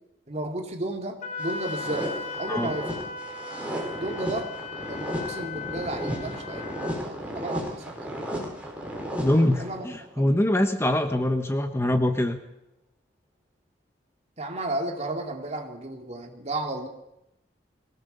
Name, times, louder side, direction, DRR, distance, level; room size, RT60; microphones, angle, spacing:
voice 1, 0.3-2.1 2.4-3.0 4.0-4.5 4.9-8.2 9.6-9.8 10.2-10.4 14.4-16.9, right 1 dB, 40° right, 3 dB, 2.9 m, -33 dB
Wind instrument woodwind instrument, 1.2-7.0, left 3 dB, 45° left, 2.4 m, -37 dB
sound 1, 1.4-10.0, equal, 10° right, 5.4 m, -34 dB
voice 2, 9.2-12.4, left 1 dB, 15° left, 7 dB, 1.1 m, -23 dB
23.0 x 17.5 x 6.9 m, 0.88 s
head